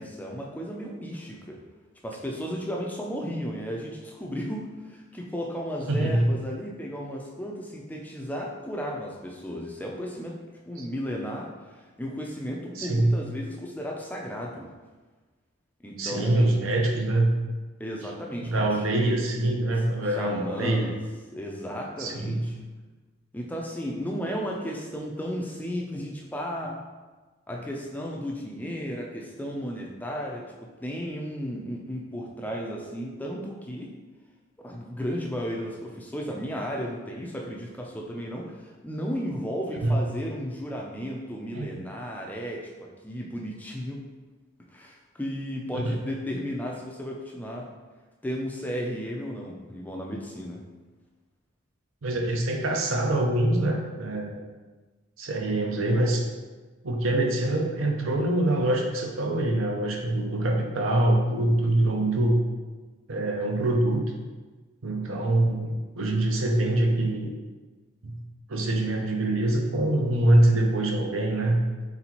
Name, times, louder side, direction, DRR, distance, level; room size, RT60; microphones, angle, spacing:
voice 1, 0.0-1.6 2.0-10.4 10.7-14.7 15.8-16.6 17.8-18.8 20.2-21.0 21.3-22.6 23.3-26.8 27.5-33.9 34.6-44.0 44.7-47.7 48.2-50.6, equal, 10° left, -1 dB, 0.3 m, -34 dB
voice 2, 5.9-6.2 10.8-10.9 12.8-13.2 16.0-17.3 18.4-20.9 22.0-22.4 39.8-40.0 41.5-41.7 45.7-46.0 52.0-54.4 55.2-56.2 56.8-62.4 63.1-64.0 64.8-67.3 68.0-68.2 68.5-71.6, right 1 dB, 80° right, 1 dB, 0.6 m, -24 dB
4.1 x 3.7 x 2.9 m, 1.3 s
head